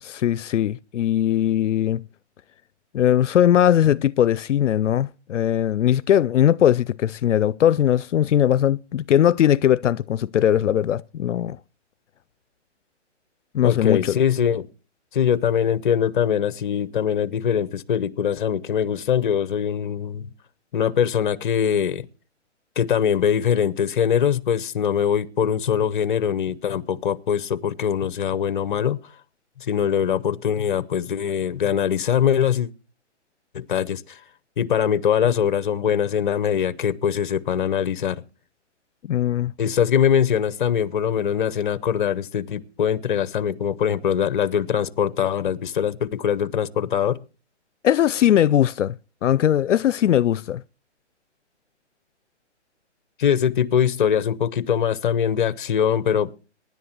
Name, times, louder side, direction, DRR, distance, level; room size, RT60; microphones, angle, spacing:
voice 1, 0.0-2.0 2.9-11.6 13.5-14.2 39.1-39.5 47.8-49.0 49.2-50.6, left 10 dB, 80° left, 0.5 m, -20 dB
voice 2, 13.6-14.7 15.1-20.3 20.7-22.1 22.8-29.0 29.6-32.7 33.5-34.2 34.6-38.2 39.6-47.2 53.2-56.4, left 8 dB, 45° left, 0.8 m, -22 dB
23.5 x 10.5 x 2.9 m
hypercardioid pair, 160°, 36 cm